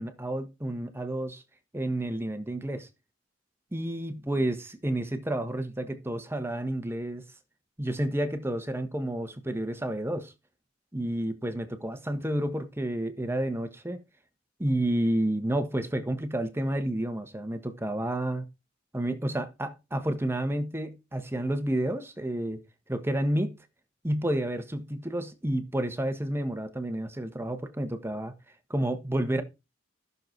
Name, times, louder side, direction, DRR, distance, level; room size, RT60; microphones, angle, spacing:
voice 1, 0.0-1.4 1.7-2.9 3.7-7.2 7.8-10.3 10.9-14.0 14.6-18.5 18.9-22.6 22.9-23.6 24.0-28.3 28.7-29.4, right 1 dB, 10° right, 1.3 m, -30 dB
14.0 x 6.8 x 4.5 m
head